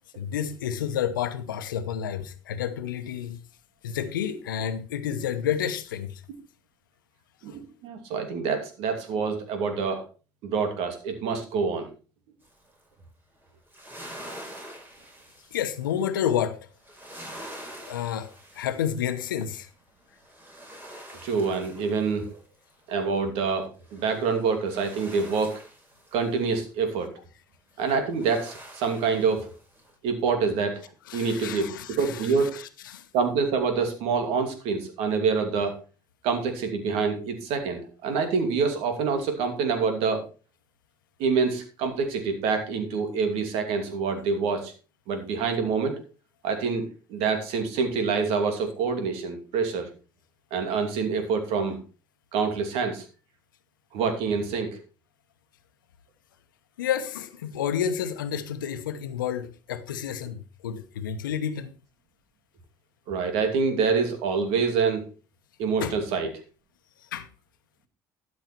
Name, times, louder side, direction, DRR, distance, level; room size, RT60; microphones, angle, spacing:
voice 1, 0.2-3.4 3.8-6.2 15.5-16.6 17.8-18.3 18.5-19.7 31.1-33.1 56.8-61.7 65.8-66.0 67.1-67.3, left 9 dB, 90° left, 1.0 m, -30 dB
voice 2, 7.4-10.0 10.4-11.9 21.2-22.4 22.9-25.6 26.1-27.1 27.8-29.5 30.0-30.8 31.1-32.6 33.1-35.8 36.2-40.2 41.2-44.7 45.1-46.0 46.4-49.9 50.5-51.8 52.3-53.0 53.9-54.8 63.1-65.1 65.6-66.3, right 5 dB, 70° right, 2.7 m, -26 dB
sound 1, 12.4-12.8 13.4-16.2 16.8-19.6 20.0-23.0 23.8-26.6 27.9-30.0, right 1 dB, 20° right, 5.2 m, -46 dB
12.5 x 6.5 x 4.5 m
hypercardioid pair, 65°, 11 cm